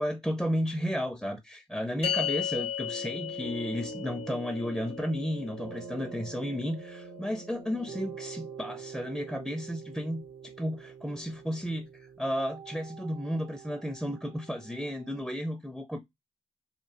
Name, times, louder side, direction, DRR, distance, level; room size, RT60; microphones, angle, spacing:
voice 1, 0.0-16.0, equal, ahead, 0.4 m, -33 dB
sound 1, 2.0-8.6, left 9 dB, 55° left, 0.5 m, -37 dB
sound 2, 2.9-15.2, right 7 dB, 75° right, 0.8 m, -46 dB
3.0 x 2.1 x 2.6 m
cardioid pair, 55°, 12 cm